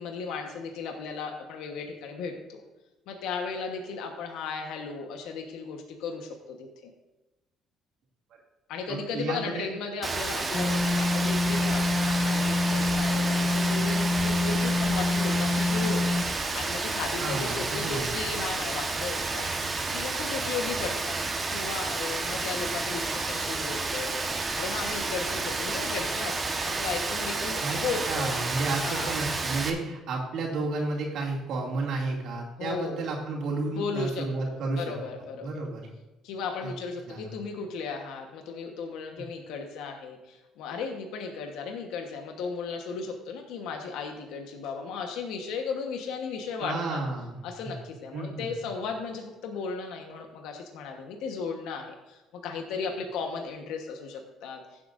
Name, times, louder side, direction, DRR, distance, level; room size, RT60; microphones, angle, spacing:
voice 1, 0.0-2.6 3.1-6.9 8.7-21.2 21.5-24.2 24.5-26.4 26.6-28.4 28.8-29.2 32.6-33.1 33.8-35.6 36.2-47.0 47.4-54.6, left 5 dB, 85° left, 3 dB, 1.2 m, -35 dB
voice 2, 8.9-9.7 17.2-18.1 27.6-27.8 28.0-34.9 35.3-35.9 36.6-36.7 37.1-37.3 46.6-47.7 48.1-48.6, right 3 dB, 65° right, -2 dB, 2.5 m, -32 dB
Rain, 10.0-29.7, right 3 dB, 25° right, 1.2 m, -31 dB
sound 1, 10.5-16.3, left 3 dB, 25° left, 0.7 m, -26 dB
16.0 x 7.8 x 2.6 m, 1.1 s
cardioid pair, 115°, 0 cm